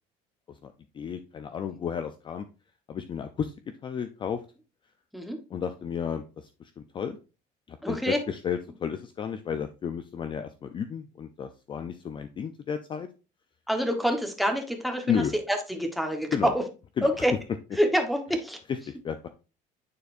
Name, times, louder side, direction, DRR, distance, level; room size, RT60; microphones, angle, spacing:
voice 1, 0.5-2.5 2.9-3.5 3.8-4.4 5.5-7.2 7.7-13.1 15.1-15.3 16.3-16.5 17.0-17.1 18.7-19.2, left 7 dB, 30° left, 9 dB, 0.4 m, -32 dB
voice 2, 7.8-8.2 13.7-16.5 17.0-17.3 17.7-18.6, equal, ahead, 5 dB, 1.1 m, -26 dB
9.5 x 4.1 x 2.5 m, 0.32 s
cardioid pair, 130°, 16 cm